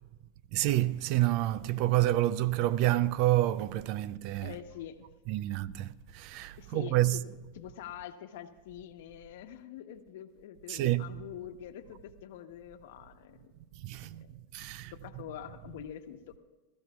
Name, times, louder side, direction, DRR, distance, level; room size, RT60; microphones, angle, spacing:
voice 1, 0.5-4.6 5.3-7.2 10.7-11.2 13.8-14.2 14.5-15.2, right 15 dB, 50° right, 0.5 m, -29 dB
voice 2, 4.4-5.0 6.6-13.5 14.0-14.4 15.0-16.4, left 10 dB, 70° left, 1.1 m, -45 dB
21.0 x 14.0 x 2.4 m
supercardioid pair, 130°, 0 cm